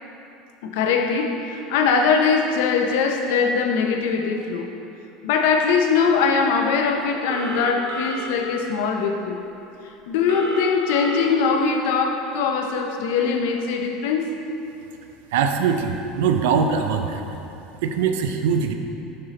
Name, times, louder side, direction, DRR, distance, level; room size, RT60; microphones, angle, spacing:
voice 1, 0.6-4.7 5.2-9.4 10.1-14.3, left 5 dB, 70° left, 3 dB, 0.7 m, -21 dB
Telephone, 7.3-8.3 10.3-11.3, right 3 dB, 70° right, 1.5 m, -31 dB
voice 2, 15.3-17.2 17.8-18.7, right 6 dB, 90° right, 6 dB, 0.5 m, -22 dB
6.8 x 5.6 x 4.0 m, 3.0 s
cardioid pair, 175°, 0 cm